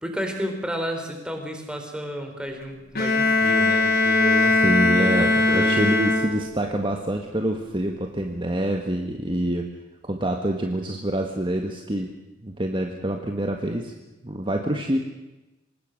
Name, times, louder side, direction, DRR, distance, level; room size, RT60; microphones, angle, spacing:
voice 1, 0.0-4.6 5.0-5.9, equal, 5° right, 3 dB, 4.0 m, -32 dB
Bowed string instrument, 3.0-6.7, left 2 dB, 55° left, 1.8 m, -20 dB
voice 2, 4.6-9.7 10.0-12.1 12.4-13.9 14.2-15.0, right 1 dB, 25° right, 3 dB, 1.6 m, -26 dB
25.0 x 20.0 x 6.6 m, 1.0 s
head